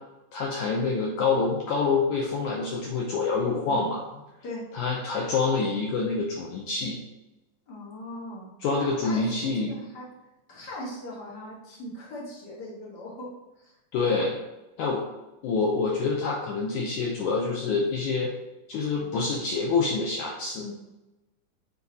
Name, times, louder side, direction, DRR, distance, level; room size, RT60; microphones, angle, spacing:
voice 1, 0.3-4.0 4.7-7.0 8.6-9.8 13.9-14.4 14.8-15.0 15.4-18.3 18.7-20.7, left 4 dB, 80° left, -2 dB, 1.7 m, -26 dB
voice 2, 7.7-10.1 10.5-13.3 13.6-13.7 20.5-20.7, left 1 dB, 45° left, -5 dB, 1.4 m, -40 dB
7.0 x 4.1 x 4.1 m, 1.0 s
omnidirectional pair, 4.3 m